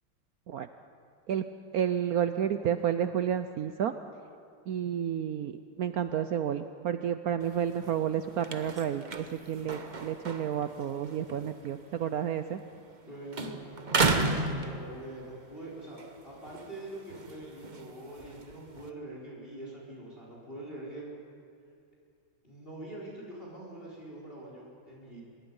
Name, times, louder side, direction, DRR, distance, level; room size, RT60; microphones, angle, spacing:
voice 1, 1.7-3.9 4.7-5.5 5.8-12.6, right 9 dB, 90° right, 10 dB, 0.8 m, -31 dB
sound 1, 7.4-13.0 13.3-15.3 15.8-18.9, right 3 dB, 35° right, 0.7 m, -34 dB
voice 2, 13.1-14.1 14.4-21.0 22.4-25.2, right 1 dB, 25° left, -4 dB, 4.4 m, -44 dB
25.0 x 21.5 x 5.5 m, 2.4 s
omnidirectional pair, 2.3 m